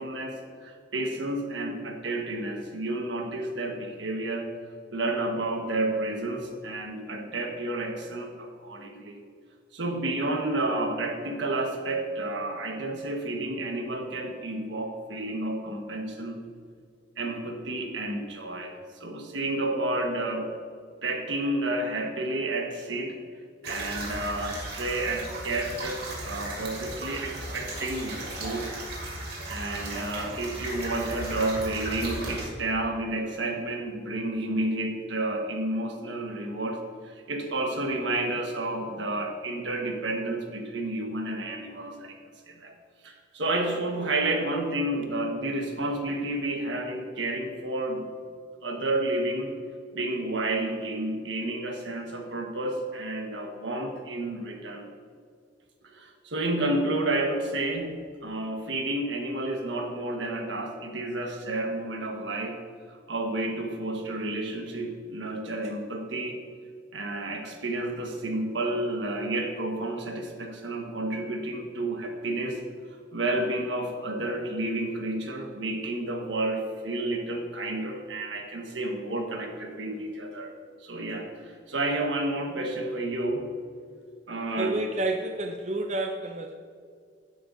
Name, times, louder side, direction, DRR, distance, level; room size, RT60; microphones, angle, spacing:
voice 1, 0.0-4.5 4.9-9.2 9.7-16.4 17.2-20.5 21.0-23.2 23.6-28.7 29.5-42.2 42.5-42.8 43.0-48.1 48.6-49.5 49.9-54.9 55.8-62.6 62.9-66.4 66.9-72.6 73.1-80.6 80.8-83.5 84.3-84.8, right 2 dB, 80° right, 3 dB, 1.3 m, -31 dB
sound 1, 23.6-32.5, right 1 dB, 60° right, 2.6 m, -36 dB
voice 2, 84.6-86.5, right 2 dB, 40° right, 5 dB, 0.5 m, -29 dB
12.0 x 9.7 x 2.6 m, 2.2 s
head